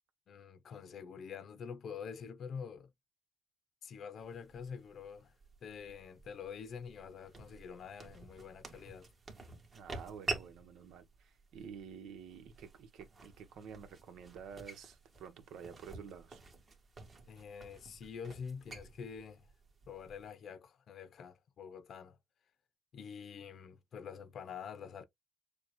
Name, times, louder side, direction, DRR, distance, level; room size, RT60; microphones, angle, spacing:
voice 1, 0.3-2.9 3.8-5.3 5.6-9.1 17.3-19.5 19.9-22.2 22.9-25.0, left 6 dB, 60° left, 0.7 m, -46 dB
sound 1, 4.2-20.3, right 3 dB, 35° right, 1.7 m, -49 dB
voice 2, 9.7-16.4, right 7 dB, 80° right, 1.1 m, -50 dB
6.9 x 2.3 x 3.1 m
cardioid pair, 90°, 0 cm